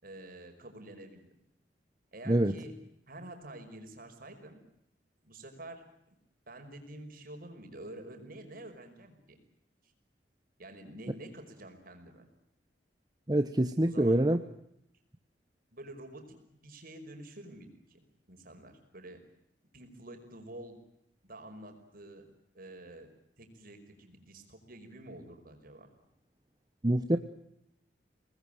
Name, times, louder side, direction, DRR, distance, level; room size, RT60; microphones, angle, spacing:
voice 1, 0.0-1.3 2.1-2.8 3.1-4.6 5.2-5.8 6.5-9.4 10.6-12.3 13.8-14.2 15.7-18.0 18.3-19.2 19.7-20.8 21.2-22.3 22.5-23.1 23.4-25.9, right 1 dB, 55° right, 5 dB, 5.4 m, -48 dB
voice 2, 13.3-14.4 26.8-27.2, right 1 dB, 25° right, 8 dB, 1.0 m, -25 dB
25.5 x 20.0 x 9.0 m, 0.77 s
head